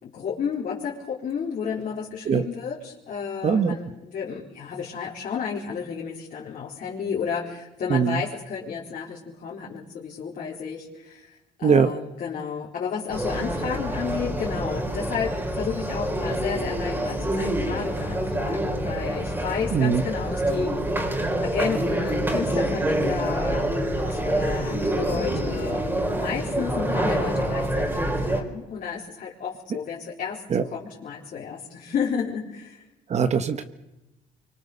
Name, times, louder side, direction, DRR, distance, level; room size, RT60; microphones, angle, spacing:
voice 1, 0.0-20.7 21.1-25.9 26.1-30.4 30.7-32.8, left 6 dB, 50° left, -4 dB, 4.3 m, -32 dB
voice 2, 3.4-3.8 7.9-8.2 11.6-11.9 19.7-20.0 30.5-30.6 33.1-33.6, right 6 dB, 40° right, 9 dB, 1.3 m, -21 dB
sound 1, 13.1-28.4, right 1 dB, 10° right, 4.1 m, -26 dB
25.0 x 24.5 x 6.9 m, 0.99 s
cardioid pair, 110°, 17 cm